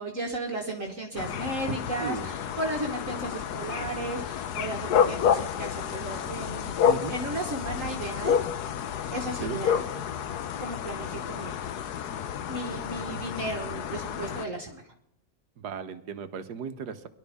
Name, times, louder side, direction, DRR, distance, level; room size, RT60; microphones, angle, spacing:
voice 1, 0.0-6.8 7.1-8.4 9.1-9.9 10.6-12.0 12.5-14.9, right 2 dB, 50° right, 1 dB, 1.7 m, -35 dB
sound 1, 1.2-14.5, left 8 dB, 70° left, 1.2 m, -30 dB
voice 2, 2.0-2.3 6.8-7.2 9.4-9.6 15.6-17.1, right 7 dB, 65° right, 10 dB, 1.5 m, -36 dB
22.0 x 12.0 x 3.6 m, 0.74 s
omnidirectional pair, 1.9 m